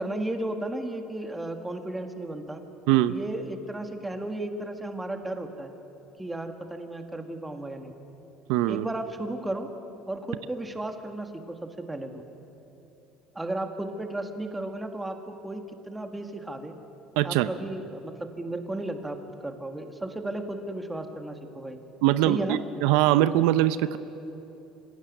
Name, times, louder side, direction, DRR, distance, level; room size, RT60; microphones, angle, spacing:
voice 1, 0.0-2.6 3.1-5.7 6.2-7.9 8.7-9.7 10.1-12.2 13.3-16.7 17.2-19.2 19.4-21.8 22.3-22.6, right 1 dB, 10° right, 6 dB, 1.6 m, -34 dB
voice 2, 8.5-8.9 17.2-17.5 22.0-24.0, right 14 dB, 80° right, 14 dB, 0.7 m, -22 dB
25.5 x 16.0 x 9.3 m, 3.0 s
cardioid pair, 145°, 0 cm